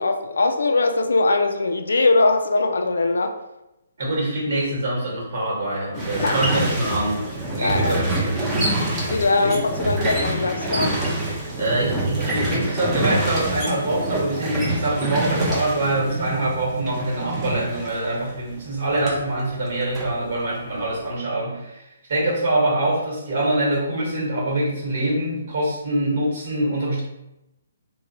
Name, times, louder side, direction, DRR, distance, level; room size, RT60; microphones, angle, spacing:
voice 1, 0.0-3.4 6.2-6.4 7.6-8.0 9.1-10.9, left 3 dB, 80° left, 6 dB, 0.3 m, -21 dB
voice 2, 4.0-7.3 7.5-8.6 9.4-9.6 11.6-27.0, right 1 dB, 60° right, -3 dB, 1.2 m, -24 dB
sound 1, 5.9-19.2 19.5-20.9, right 1 dB, 15° right, 0.8 m, -26 dB
2.8 x 2.1 x 2.7 m, 0.91 s
hypercardioid pair, 140°, 0 cm